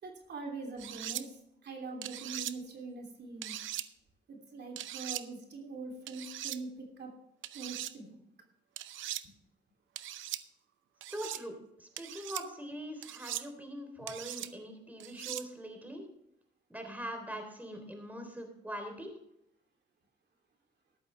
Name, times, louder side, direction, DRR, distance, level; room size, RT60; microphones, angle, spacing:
voice 1, 0.0-3.5 4.3-7.1 7.5-8.2 14.0-14.1, right 3 dB, 60° right, 2 dB, 3.1 m, -43 dB
sound 1, 0.8-1.2 2.0-2.5 3.4-3.9 4.8-5.2 6.1-6.6 7.4-7.9 8.8-9.2 10.0-10.4 11.0-11.4 12.0-12.4 13.0-13.5 14.1-14.5 15.0-15.4, right 13 dB, 75° right, 0.7 m, -40 dB
voice 2, 11.1-16.1 16.7-19.1, equal, 10° right, 4 dB, 3.5 m, -42 dB
14.0 x 11.0 x 3.4 m, 0.80 s
cardioid pair, 90°, 20 cm